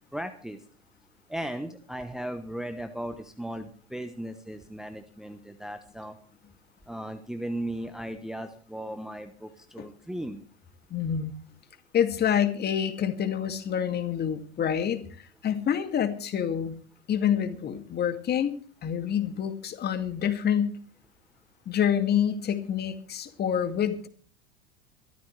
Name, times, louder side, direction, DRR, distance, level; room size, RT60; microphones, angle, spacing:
voice 1, 0.1-0.6 1.3-6.2 6.9-10.4, right 1 dB, ahead, 8 dB, 1.1 m, -36 dB
voice 2, 10.9-11.3 11.9-15.0 15.4-16.8 17.1-18.6 18.8-20.8 21.7-24.1, left 9 dB, 30° left, 8 dB, 2.4 m, -27 dB
23.0 x 14.5 x 3.3 m, 0.42 s
hypercardioid pair, 95°, 32 cm